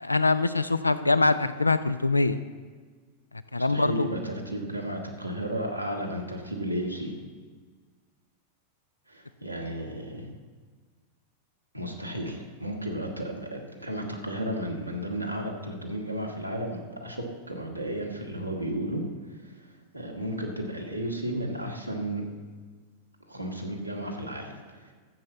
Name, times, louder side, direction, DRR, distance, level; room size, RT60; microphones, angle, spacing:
voice 1, 0.0-2.4 3.5-4.1, left 3 dB, 85° left, 13 dB, 0.5 m, -23 dB
voice 2, 3.7-7.2 9.1-10.3 11.7-22.2 23.3-24.9, right 1 dB, 90° right, 1 dB, 1.8 m, -33 dB
12.5 x 7.7 x 7.2 m, 1.5 s
figure-of-eight pair, 90°, 0 cm